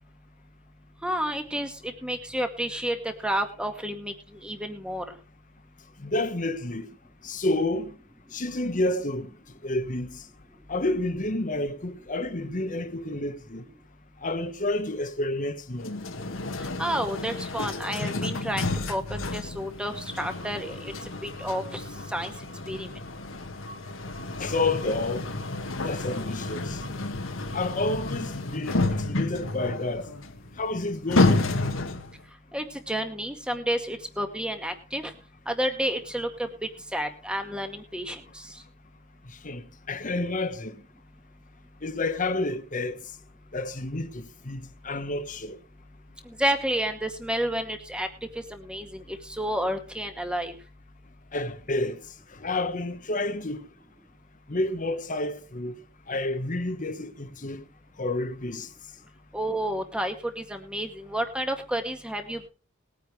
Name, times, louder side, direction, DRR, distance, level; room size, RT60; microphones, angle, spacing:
voice 1, 1.0-5.0 16.8-20.9 21.2-21.8 22.1-22.3 22.7-22.9 32.5-35.1 35.5-38.6 46.3-48.1 48.4-50.5 59.3-62.5, equal, 5° right, 1.9 m, -30 dB
voice 2, 6.0-6.9 7.2-8.0 8.3-9.3 9.6-10.2 10.7-13.6 14.2-15.9 24.4-25.3 25.8-26.8 27.5-30.1 30.6-31.5 39.4-40.7 41.8-43.0 43.5-45.6 51.3-52.0 52.4-53.6 54.5-55.7 56.1-57.6 58.0-58.7, left 2 dB, 40° left, 1.4 m, -29 dB
sound 1, 15.8-32.2, left 2 dB, 70° left, 1.7 m, -30 dB
20.5 x 9.4 x 3.4 m
head